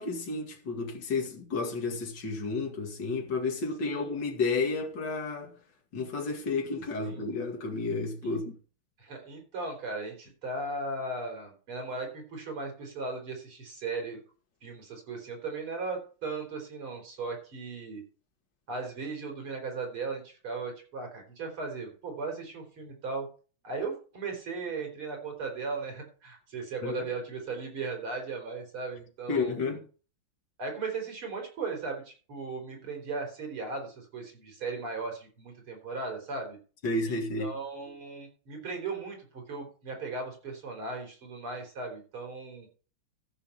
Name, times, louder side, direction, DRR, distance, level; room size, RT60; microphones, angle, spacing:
voice 1, 0.0-5.6 5.9-8.6 26.8-27.1 29.3-29.8 36.8-37.5, left 3 dB, 55° left, 2.6 m, -31 dB
voice 2, 9.0-14.2 14.6-18.0 18.7-23.3 23.6-29.8 30.6-36.6 37.0-42.7, right 3 dB, 85° right, 4.7 m, -37 dB
14.0 x 5.7 x 5.6 m
omnidirectional pair, 2.3 m